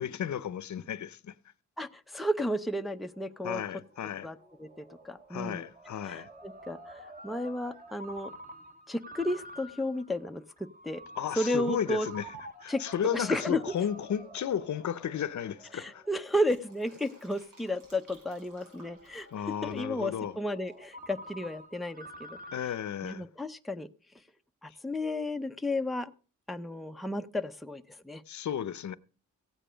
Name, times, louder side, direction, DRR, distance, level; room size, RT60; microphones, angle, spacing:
voice 1, 0.0-1.3 3.4-4.3 5.3-6.3 11.2-12.3 12.6-16.0 19.3-20.4 22.5-23.3 28.3-29.0, left 9 dB, 65° left, 0.7 m, -34 dB
voice 2, 1.8-3.6 4.2-4.7 5.0-5.6 6.1-8.3 8.9-10.4 10.8-11.0 11.4-12.1 12.7-12.8 13.1-13.6 15.7-22.4 23.0-23.9 24.6-26.1 26.5-28.2, left 1 dB, ahead, 0.6 m, -33 dB
Ringtone, 2.9-22.7, equal, 25° right, 2.0 m, -49 dB
Fill (with liquid), 16.1-20.9 21.1-21.2, right 2 dB, 90° right, 7.1 m, -59 dB
16.0 x 9.0 x 5.0 m
wide cardioid pair, 155°, 32 cm